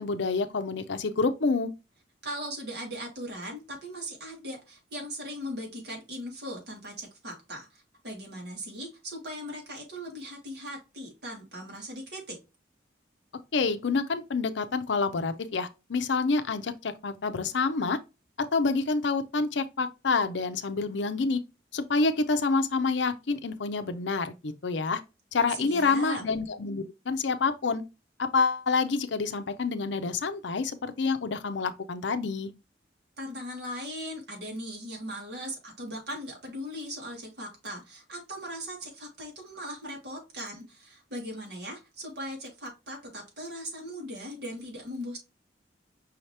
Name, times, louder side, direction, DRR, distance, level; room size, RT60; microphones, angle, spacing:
voice 1, 0.0-1.7 13.5-18.0 18.5-21.4 21.7-25.0 25.3-27.8 28.2-32.5, left 4 dB, 70° left, 0.6 m, -28 dB
voice 2, 2.2-12.4 25.5-26.2 33.2-45.2, equal, 60° right, 2.1 m, -39 dB
5.5 x 2.9 x 3.2 m
head